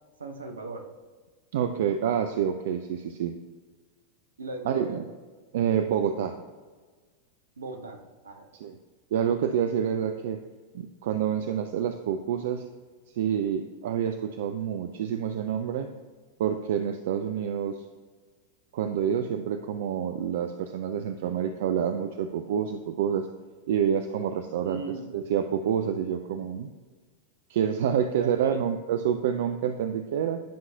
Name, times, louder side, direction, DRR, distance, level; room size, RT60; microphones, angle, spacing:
voice 1, 0.2-0.9 4.4-5.0 7.6-8.0 8.2-8.5 24.6-25.1 28.2-28.6, right 3 dB, 70° right, 4 dB, 0.7 m, -37 dB
voice 2, 1.5-3.4 4.7-4.9 5.5-6.3 8.5-8.8 9.1-10.4 10.7-12.6 13.1-15.9 16.4-17.8 18.7-23.3 23.7-24.8 25.1-26.7 27.5-30.4, right 8 dB, 55° right, 7 dB, 0.3 m, -28 dB
10.0 x 5.5 x 2.3 m, 1.4 s
figure-of-eight pair, 90°, 0 cm